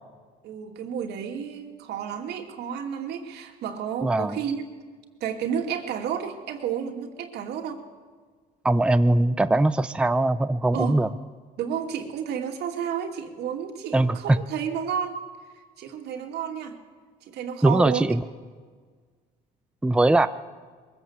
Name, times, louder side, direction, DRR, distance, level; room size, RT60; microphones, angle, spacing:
voice 1, 0.4-4.7 5.2-7.8 10.7-11.0 11.6-15.2 15.8-16.8 17.2-18.1, right 8 dB, 80° right, 4 dB, 2.6 m, -31 dB
voice 2, 4.0-4.4 8.6-11.1 13.9-14.4 17.6-18.2 19.8-20.3, right 2 dB, 5° right, 11 dB, 0.6 m, -21 dB
22.0 x 15.5 x 8.0 m, 1.5 s
cardioid pair, 110°, 17 cm